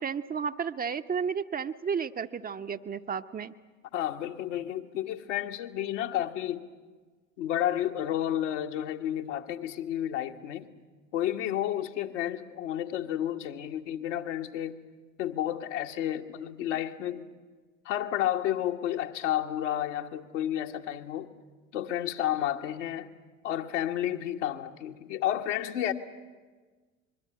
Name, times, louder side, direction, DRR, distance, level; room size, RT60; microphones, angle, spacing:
voice 1, 0.0-3.5, right 6 dB, 25° right, 0.7 m, -32 dB
voice 2, 3.9-6.6 7.4-10.7 11.1-14.8 15.2-17.2 17.8-21.3 21.7-23.1 23.4-25.9, left 11 dB, 65° left, 1.5 m, -31 dB
25.0 x 22.0 x 8.9 m
figure-of-eight pair, 65°, 39 cm